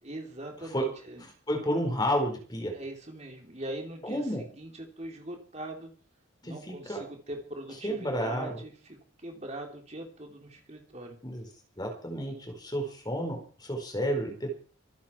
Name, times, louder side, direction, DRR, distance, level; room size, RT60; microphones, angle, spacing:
voice 1, 0.0-1.3 2.7-5.9 6.4-11.2, right 1 dB, 35° right, 2 dB, 3.3 m, -41 dB
voice 2, 1.5-2.7 4.0-4.4 6.4-7.0 7.8-8.6 11.2-11.4 11.8-14.5, equal, 20° left, 3 dB, 4.9 m, -31 dB
25.0 x 11.5 x 4.6 m, 0.40 s
head